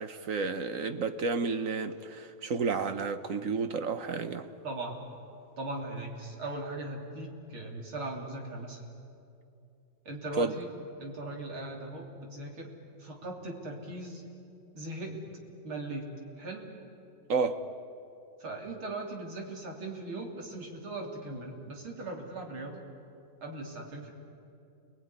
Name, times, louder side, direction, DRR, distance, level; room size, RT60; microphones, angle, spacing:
voice 1, 0.0-4.5 10.4-10.5 17.3-17.6, right 4 dB, 50° right, 1.2 m, -31 dB
voice 2, 4.6-5.0 5.6-8.8 10.1-10.7 11.0-12.7 13.0-14.2 14.7-15.2 15.6-16.1 16.4-16.7 18.4-22.8 23.4-24.1, right 2 dB, 80° right, 4.0 m, -39 dB
30.0 x 20.0 x 9.7 m
omnidirectional pair, 2.2 m